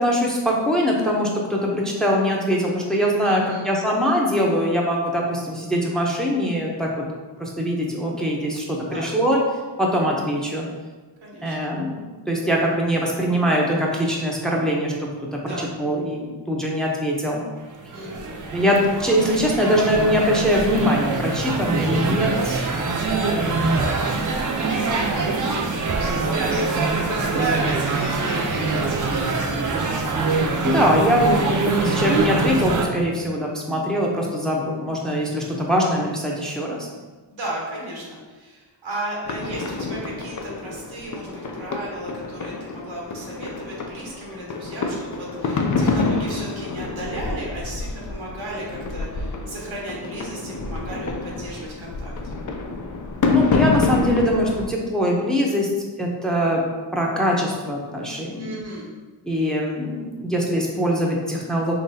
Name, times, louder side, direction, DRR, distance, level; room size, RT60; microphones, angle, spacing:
voice 1, 0.0-6.9 7.4-9.4 9.8-10.7 11.4-12.0 12.3-14.9 15.3-17.4 18.5-22.9 30.6-36.9 53.3-55.7 56.0-56.6 56.9-58.5 59.2-61.7, equal, ahead, -2 dB, 0.7 m, -22 dB
voice 2, 3.2-3.7 8.9-9.1 11.2-11.6 15.4-15.7 17.9-18.3 23.6-24.7 25.0-30.3 30.6-30.9 31.3-31.6 37.3-52.3 58.4-58.9, right 1 dB, 90° right, -3 dB, 1.1 m, -34 dB
sound 1, 17.6-32.9, right 3 dB, 45° right, 0.6 m, -24 dB
sound 2, 39.2-54.7, left 3 dB, 40° left, 0.5 m, -28 dB
3.9 x 2.9 x 2.7 m, 1.3 s
cardioid pair, 55°, 46 cm